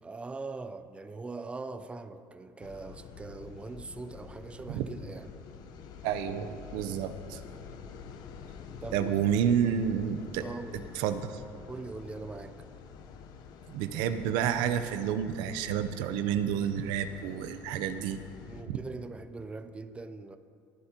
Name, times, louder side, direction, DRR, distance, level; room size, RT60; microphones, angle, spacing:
voice 1, 0.0-5.3 6.3-6.5 8.8-9.3 10.4-10.9 11.7-12.7 18.5-20.4, right 3 dB, 15° right, 10 dB, 0.5 m, -41 dB
sound 1, 2.6-18.6, left 6 dB, 60° left, 0.9 m, -47 dB
voice 2, 6.0-7.4 8.9-10.4 11.0-11.4 13.7-18.2 18.7-18.8, right 9 dB, 80° right, 10 dB, 0.7 m, -30 dB
20.5 x 11.5 x 2.9 m, 2.4 s
cardioid pair, 110°, 8 cm